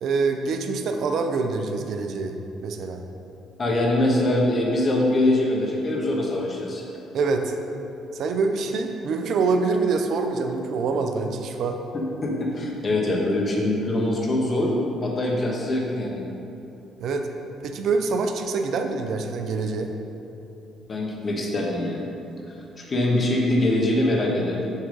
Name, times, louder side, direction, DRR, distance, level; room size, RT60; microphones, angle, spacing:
voice 1, 0.0-2.4 2.6-3.0 7.1-7.5 8.1-11.8 17.0-17.3 17.6-19.9, right 4 dB, 65° right, 5 dB, 0.5 m, -25 dB
voice 2, 3.6-6.8 11.9-14.7 15.0-16.2 20.9-22.0 22.7-24.7, left 1 dB, 40° left, -2 dB, 1.3 m, -23 dB
6.5 x 3.6 x 5.3 m, 2.8 s
supercardioid pair, 65°, 0 cm